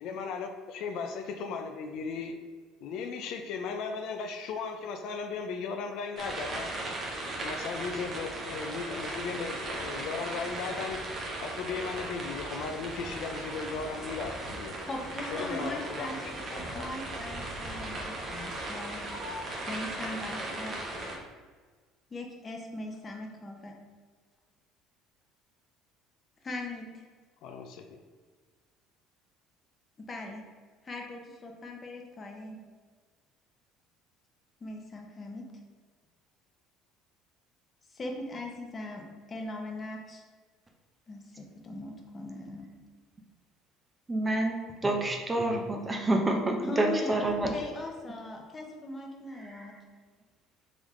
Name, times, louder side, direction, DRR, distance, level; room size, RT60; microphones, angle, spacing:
voice 1, 0.0-2.4 2.8-6.7 7.4-11.0 11.4-14.7 15.3-16.9 27.4-27.9, left 5 dB, 65° left, 5 dB, 0.4 m, -36 dB
sound 1, 6.2-21.2, right 2 dB, 45° right, 1.0 m, -37 dB
voice 2, 14.9-16.2 16.5-19.0 19.7-20.8 22.1-23.7 26.4-27.0 30.0-30.4 30.8-32.6 34.6-35.5 37.9-40.2 41.1-42.7 46.6-47.2 47.5-49.7, left 2 dB, 30° left, 2 dB, 0.8 m, -39 dB
voice 3, 44.1-47.5, right 2 dB, 20° right, 2 dB, 0.7 m, -28 dB
3.7 x 3.4 x 3.1 m, 1.4 s
supercardioid pair, 90°, 0 cm